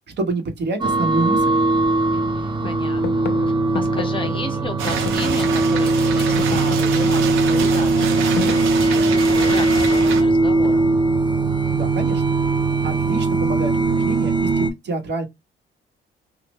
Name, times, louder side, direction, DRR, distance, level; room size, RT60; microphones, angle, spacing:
voice 1, 0.2-1.5 11.7-12.2 12.8-15.3, right 3 dB, 60° right, 1.2 m, -27 dB
sound 1, 0.8-14.7, right 3 dB, 25° right, 0.6 m, -19 dB
sound 2, 1.3-1.4 1.8-2.3 2.6-5.8 6.1-9.7 10.6-11.1, left 9 dB, 60° left, 0.4 m, -33 dB
voice 2, 2.1-3.3 3.7-10.8, left 3 dB, 25° left, 0.9 m, -34 dB
sound 3, 4.8-10.2, right 7 dB, 85° right, 0.8 m, -27 dB
3.1 x 2.4 x 3.1 m
cardioid pair, 90°, 20 cm